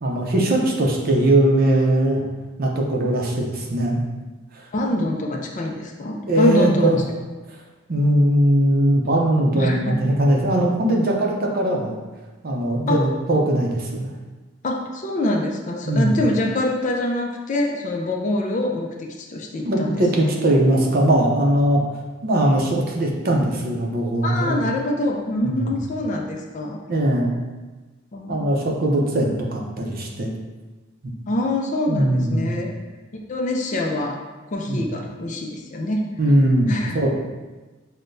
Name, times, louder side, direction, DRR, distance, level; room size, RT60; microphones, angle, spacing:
voice 1, 0.0-2.2 2.6-4.0 6.3-7.0 7.9-12.0 12.4-14.1 15.9-16.1 19.6-21.8 22.2-24.6 25.4-25.7 26.9-27.4 28.3-30.3 31.0-31.1 31.9-32.5 34.7-34.8 36.2-37.1, right 1 dB, 50° right, 0 dB, 0.6 m, -20 dB
voice 2, 4.7-6.9 9.4-10.0 12.9-13.0 14.6-20.3 24.2-26.8 28.1-28.4 31.3-32.7 33.3-34.2 34.5-36.0 36.7-37.0, left 1 dB, 40° left, 1 dB, 0.4 m, -25 dB
6.3 x 2.1 x 2.6 m, 1.2 s
head